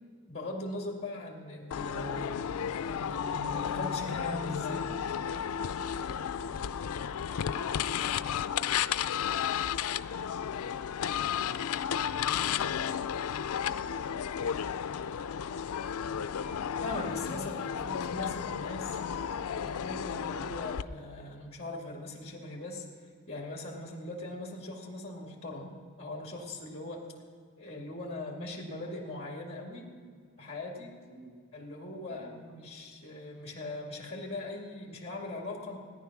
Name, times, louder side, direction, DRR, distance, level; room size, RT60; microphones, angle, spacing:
voice 1, 0.3-2.6 2.9-4.9 16.8-19.0 19.4-22.8 23.3-27.0 27.6-29.9 30.4-30.9 31.5-35.8, left 2 dB, 30° left, 0 dB, 2.1 m, -40 dB
sound 1, 1.7-20.8, left 8 dB, 85° left, 0.4 m, -33 dB
voice 2, 5.7-10.0 10.5-11.7 12.3-14.6 31.1-31.4 32.0-32.6, equal, 65° right, -2 dB, 2.7 m, -55 dB
17.5 x 10.0 x 5.9 m, 2.1 s
head